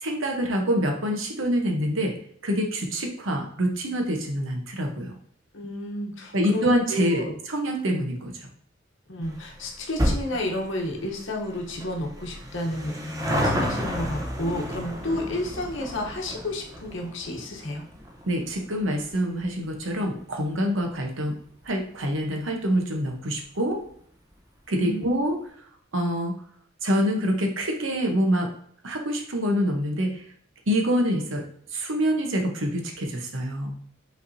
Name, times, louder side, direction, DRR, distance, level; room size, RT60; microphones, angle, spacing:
voice 1, 0.0-2.1 2.4-5.1 6.3-8.5 18.3-21.3 21.6-23.8 24.7-25.4 25.9-26.3 26.8-28.5 28.8-30.2 30.7-31.4 31.7-33.7, equal, 70° right, 2 dB, 1.0 m, -26 dB
voice 2, 5.5-7.3 9.1-17.8 24.7-25.1, left 1 dB, 65° left, 1 dB, 0.9 m, -31 dB
sound 1, 9.2-22.0 22.3-22.4 23.2-23.3 23.5-23.6 23.9-24.0, equal, 15° right, 0.8 m, -32 dB
5.4 x 3.3 x 2.7 m, 0.62 s
head